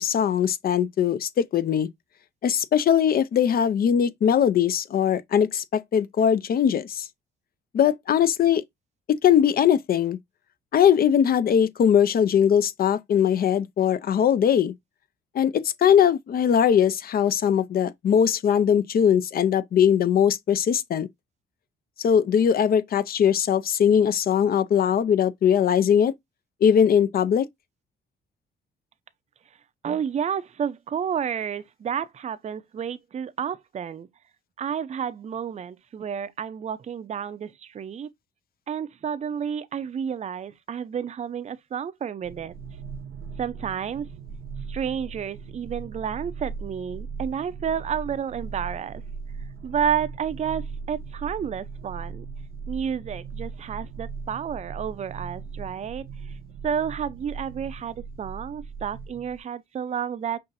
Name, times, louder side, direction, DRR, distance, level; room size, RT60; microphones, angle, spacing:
voice 1, 0.0-1.9 2.4-7.1 7.7-8.6 9.2-10.2 10.7-14.7 15.3-21.1 22.0-26.1 26.6-27.5, left 8 dB, 50° left, 0.5 m, -20 dB
voice 2, 29.8-34.1 34.6-38.1 38.7-42.5 43.4-44.1 44.7-49.0 49.6-52.3 52.7-56.4 56.6-60.4, right 8 dB, 35° right, 0.5 m, -30 dB
sound 1, 42.2-59.4, right 5 dB, 85° right, 0.7 m, -38 dB
5.4 x 2.6 x 2.5 m
cardioid pair, 90°, 20 cm